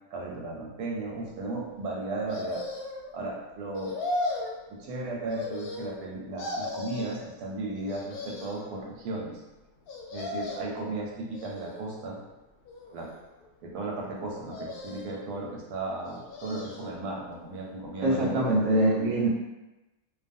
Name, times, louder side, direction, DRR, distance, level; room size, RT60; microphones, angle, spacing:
voice 1, 0.1-2.6 3.1-3.9 4.7-9.3 10.1-12.2 12.9-13.1 13.6-18.5, right 2 dB, 90° right, -2 dB, 1.2 m, -35 dB
sound 1, 2.3-3.1 3.7-4.6 5.3-6.1 6.4-7.2 7.9-8.7 9.9-10.8 11.3-12.0 12.7-13.4 14.5-15.3 16.0-16.9 17.3-17.4, left 2 dB, 75° left, 1.1 m, -36 dB
voice 2, 18.0-19.3, right 1 dB, 70° right, -4 dB, 1.0 m, -23 dB
2.6 x 2.3 x 2.6 m, 1.0 s
omnidirectional pair, 1.6 m